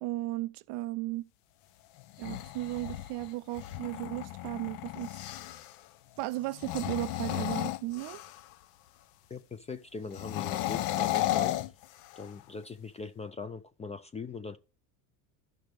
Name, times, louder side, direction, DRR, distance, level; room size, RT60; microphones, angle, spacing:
voice 1, 0.0-1.3 2.2-5.1 6.2-8.2, right 17 dB, 60° right, 0.5 m, -35 dB
sound 1, 2.0-5.7 6.5-8.5 10.1-12.4, left 15 dB, 75° left, 0.7 m, -34 dB
voice 2, 9.3-11.6 12.2-14.6, left 4 dB, 15° left, 0.3 m, -41 dB
13.5 x 6.0 x 3.3 m
supercardioid pair, 105°, 46 cm